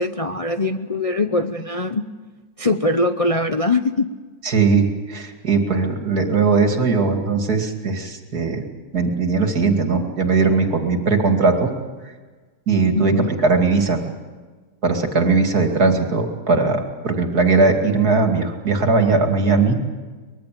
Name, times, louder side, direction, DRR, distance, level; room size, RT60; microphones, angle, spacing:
voice 1, 0.0-2.1 2.6-4.1 13.0-13.3, left 2 dB, 55° left, 7 dB, 0.4 m, -22 dB
voice 2, 4.4-8.6 8.9-11.7 12.7-14.1 14.8-19.8, right 4 dB, 60° right, 4 dB, 2.9 m, -19 dB
24.0 x 21.5 x 7.7 m, 1.4 s
omnidirectional pair, 1.9 m